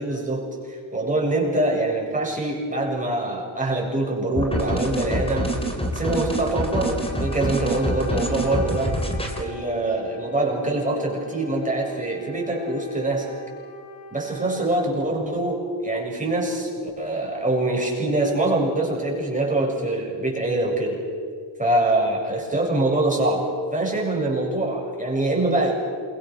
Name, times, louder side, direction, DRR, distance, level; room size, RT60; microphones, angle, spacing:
voice 1, 0.0-5.6 5.9-8.9 9.4-13.3 14.1-21.0 21.6-25.7, right 2 dB, 15° right, -2 dB, 7.5 m, -24 dB
sound 1, 4.4-9.4, equal, 10° left, 3.7 m, -26 dB
Wind instrument woodwind instrument, 7.0-15.0, left 1 dB, 75° left, 7.8 m, -42 dB
28.0 x 23.5 x 6.5 m, 2.1 s
cardioid pair, 105°, 47 cm